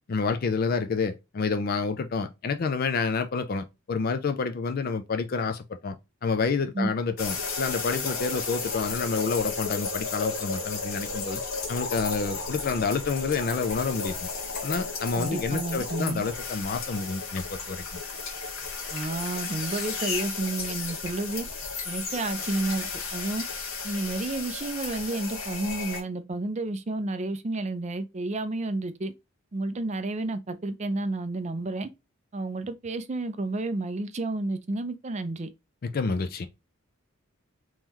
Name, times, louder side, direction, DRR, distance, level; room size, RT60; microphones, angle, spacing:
voice 1, 0.1-5.9 6.2-11.4 11.7-14.3 14.6-18.0 35.8-36.5, left 4 dB, 45° left, 0.4 m, -29 dB
sound 1, 7.2-26.0, left 4 dB, 75° left, 1.1 m, -33 dB
voice 2, 15.2-16.2 18.9-21.5 21.9-23.4 23.8-29.1 29.5-31.9 32.3-35.5, right 2 dB, 30° right, 0.5 m, -31 dB
3.7 x 3.1 x 2.9 m
head